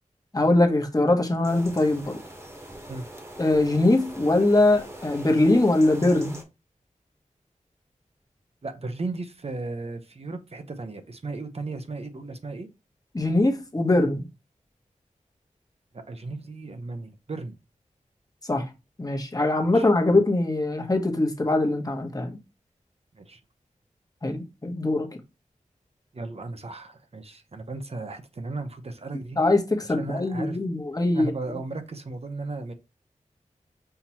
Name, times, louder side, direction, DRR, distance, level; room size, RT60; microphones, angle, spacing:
voice 1, 0.3-2.2 3.4-6.4 13.1-14.2 18.5-18.7 19.0-22.4 24.2-25.1 29.4-31.3, left 2 dB, 30° left, 1.0 m, -22 dB
sound 1, 1.4-6.4, right 1 dB, 20° right, 1.2 m, -42 dB
voice 2, 8.6-12.7 15.9-17.6 19.7-20.2 23.1-23.4 26.1-29.4 29.9-30.6 31.1-32.7, right 3 dB, 50° right, 0.7 m, -35 dB
5.7 x 2.9 x 2.9 m
wide cardioid pair, 70°, 13 cm